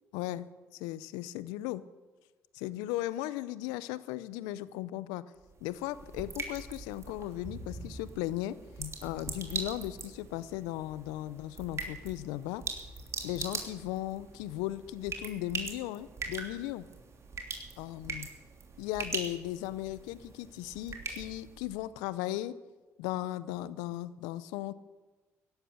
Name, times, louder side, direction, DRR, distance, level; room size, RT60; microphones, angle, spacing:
voice 1, 0.1-0.5 0.7-1.8 2.5-5.2 5.6-12.8 13.2-16.8 17.8-18.3 18.8-22.6 23.0-24.7, left 15 dB, 85° left, 17 dB, 0.6 m, -37 dB
sound 1, 5.4-21.9, right 4 dB, 45° right, 3.1 m, -42 dB
16.0 x 11.5 x 6.8 m, 1.3 s
hypercardioid pair, 55°, 7 cm